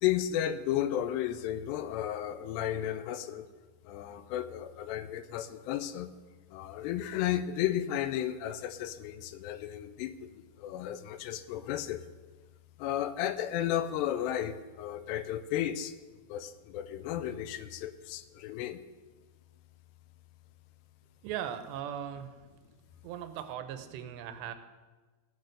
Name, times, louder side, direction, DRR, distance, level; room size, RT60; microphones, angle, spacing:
voice 1, 0.0-3.5 3.9-6.1 6.5-12.0 12.8-16.0 16.3-18.8, left 11 dB, 80° left, 12 dB, 2.6 m, -33 dB
voice 2, 21.2-22.4 23.0-24.5, right 10 dB, 85° right, 9 dB, 2.8 m, -38 dB
16.0 x 6.6 x 6.5 m, 1.3 s
omnidirectional pair, 5.0 m